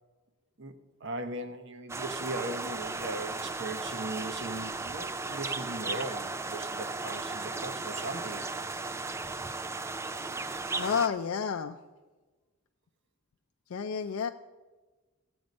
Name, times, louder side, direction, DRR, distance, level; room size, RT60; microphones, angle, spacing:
voice 1, 0.6-8.5, right 2 dB, 60° right, 8 dB, 0.9 m, -38 dB
sound 1, 1.9-11.1, right 3 dB, 15° right, 0.3 m, -36 dB
voice 2, 10.8-11.8 13.7-14.3, left 6 dB, 90° left, 6 dB, 0.4 m, -30 dB
15.0 x 7.9 x 5.3 m, 1.3 s
head